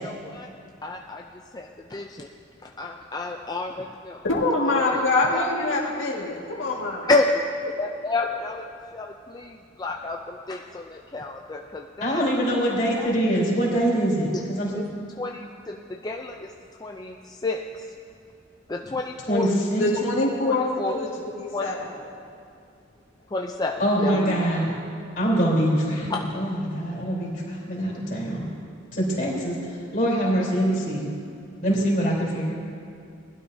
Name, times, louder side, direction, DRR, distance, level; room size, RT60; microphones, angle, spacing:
voice 1, 0.0-0.5 0.8-1.2 1.5-2.3 2.6-4.2 4.7-5.0 5.3-5.4 7.1-7.4 7.8-8.6 8.9-12.2 13.0-13.1 14.3-14.4 14.7-14.8 15.2-16.5 16.8-17.9 18.7-19.5 20.4-21.0 21.5-21.7 23.3-24.1 26.1-26.2, left 3 dB, 20° left, 1 dB, 0.4 m, -30 dB
voice 2, 4.2-7.1 19.8-21.8 23.9-24.2, left 2 dB, 85° left, -4 dB, 1.9 m, -25 dB
voice 3, 12.0-14.7 19.3-19.9 23.8-24.7 25.2-28.5 28.9-29.6 29.9-31.1 31.6-32.5, equal, 45° left, -5 dB, 3.6 m, -24 dB
20.0 x 12.0 x 2.7 m, 2.5 s
head